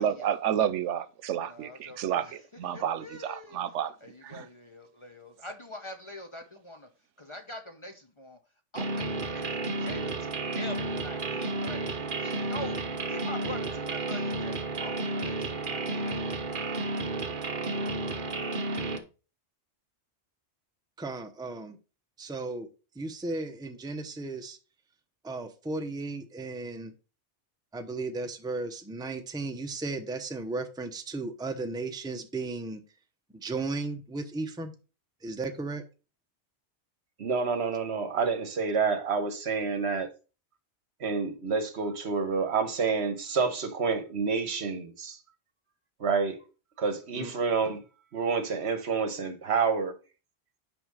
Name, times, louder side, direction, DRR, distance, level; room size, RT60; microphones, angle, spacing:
voice 1, 0.0-4.0 4.2-4.5, right 9 dB, 90° right, 1.0 m, -30 dB
voice 2, 1.5-2.3 2.7-3.6 4.0-6.9 7.2-8.4 8.7-11.9 12.2-12.8 13.1-16.8, left 1 dB, 30° left, 0.8 m, -44 dB
sound 1, 8.8-19.0, right 2 dB, 50° right, 1.0 m, -32 dB
voice 3, 21.0-21.8 22.2-22.7 23.0-24.6 25.2-26.9 27.7-32.8 33.3-34.7 35.2-35.8 47.1-47.3, right 3 dB, 5° right, 0.6 m, -35 dB
voice 4, 37.2-40.1 41.0-45.2 46.0-46.4 46.8-47.8 48.1-49.9, right 5 dB, 65° right, 1.3 m, -28 dB
6.1 x 4.9 x 5.3 m
omnidirectional pair, 1.2 m